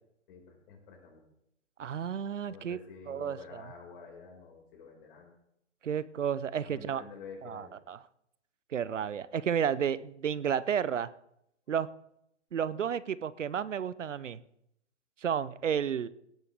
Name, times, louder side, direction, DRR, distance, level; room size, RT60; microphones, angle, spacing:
voice 1, 0.3-1.2 2.5-5.3 6.6-7.7, left 5 dB, 45° left, 1 dB, 5.3 m, -49 dB
voice 2, 1.8-2.8 3.1-3.6 5.8-7.0 7.4-8.0 8.7-11.1 11.7-11.9 12.5-14.4 15.2-16.1, right 8 dB, 80° right, 18 dB, 0.7 m, -32 dB
18.0 x 11.0 x 3.5 m, 0.77 s
figure-of-eight pair, 125°, 36 cm